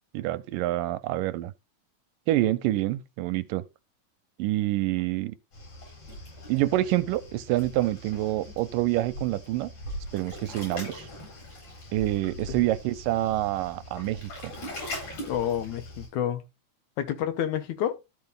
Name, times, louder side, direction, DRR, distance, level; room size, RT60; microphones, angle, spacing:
voice 1, 0.1-1.5 2.3-3.6 4.4-5.3 6.5-9.7 10.1-11.1 11.9-14.5, right 16 dB, 85° right, 2.4 m, -27 dB
Waves surf, 5.5-16.1, equal, 50° left, 5.4 m, -41 dB
voice 2, 15.3-16.4 17.0-18.0, left 10 dB, 70° left, 2.1 m, -29 dB
12.5 x 4.8 x 3.8 m
omnidirectional pair, 3.8 m